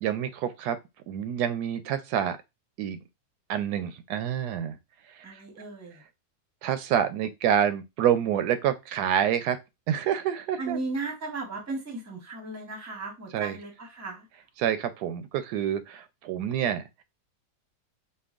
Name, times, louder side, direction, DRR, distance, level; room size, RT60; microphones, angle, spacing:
voice 1, 0.0-0.8 1.1-2.4 2.8-3.0 3.5-4.8 6.6-9.6 9.9-10.8 13.3-13.5 14.6-17.0, right 9 dB, 90° right, 1.1 m, -27 dB
voice 2, 5.2-6.0 10.6-14.3, right 3 dB, 15° right, 0.6 m, -36 dB
5.2 x 2.3 x 2.4 m
omnidirectional pair, 1.7 m